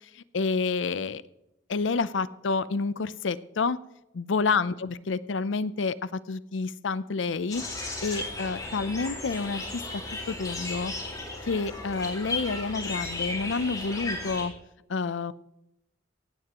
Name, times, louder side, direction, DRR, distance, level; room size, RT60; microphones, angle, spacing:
voice 1, 0.1-1.2 1.7-3.8 4.1-7.6 8.0-9.8 10.3-10.9 11.5-14.5 14.9-15.3, left 4 dB, 85° left, 16 dB, 0.6 m, -29 dB
sound 1, 7.5-14.4, left 2 dB, 20° left, 4.3 m, -35 dB
17.0 x 16.0 x 3.0 m, 0.89 s
head